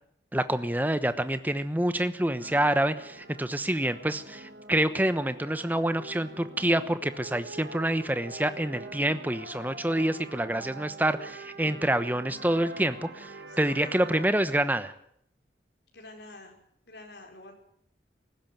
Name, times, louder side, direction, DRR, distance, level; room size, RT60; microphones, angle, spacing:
voice 1, 0.3-14.9, right 1 dB, 10° right, 12 dB, 1.0 m, -27 dB
sound 1, 2.4-14.3, right 3 dB, 75° right, 2.2 m, -45 dB
voice 2, 13.5-14.6 15.9-16.5 16.9-17.5, left 2 dB, 80° left, 2 dB, 5.0 m, -48 dB
18.5 x 15.5 x 9.1 m, 0.70 s
head